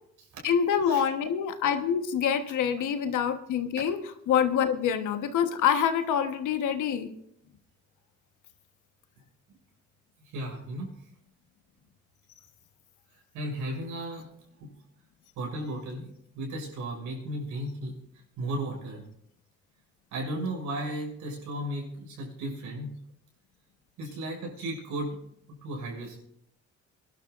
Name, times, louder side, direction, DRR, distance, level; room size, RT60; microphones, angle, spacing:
voice 1, 0.4-4.0 4.3-7.1, left 8 dB, 80° left, 7 dB, 1.3 m, -26 dB
voice 2, 10.2-10.9 13.3-14.3 15.4-19.0 20.1-22.9 24.0-25.2 25.6-26.2, right 1 dB, 90° right, -2 dB, 6.6 m, -35 dB
26.5 x 11.5 x 2.5 m, 0.73 s
cardioid pair, 90°, 30 cm